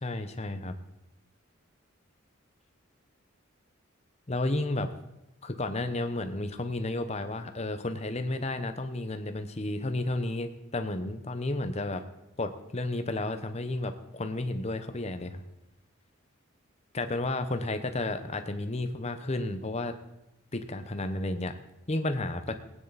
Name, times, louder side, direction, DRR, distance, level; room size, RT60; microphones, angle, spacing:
voice 1, 0.0-0.7 4.3-4.9 5.4-12.0 12.4-15.4 16.9-19.9 20.5-21.5 21.9-22.5, left 2 dB, 30° left, 8 dB, 0.9 m, -32 dB
18.0 x 9.4 x 4.1 m, 0.90 s
head